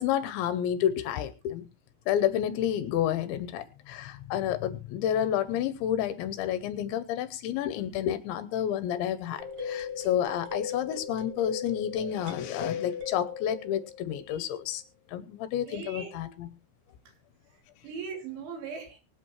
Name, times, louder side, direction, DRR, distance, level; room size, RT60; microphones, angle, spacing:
voice 1, 0.0-1.7 2.1-14.8 15.1-16.5, left 10 dB, 80° left, 13 dB, 2.8 m, -30 dB
sound 1, 9.4-14.5, left 6 dB, 40° right, 2.5 m, -38 dB
voice 2, 15.7-16.1 17.1-17.2 17.5-19.0, right 5 dB, 70° right, 3 dB, 5.4 m, -39 dB
24.0 x 8.2 x 3.1 m, 0.30 s
omnidirectional pair, 5.7 m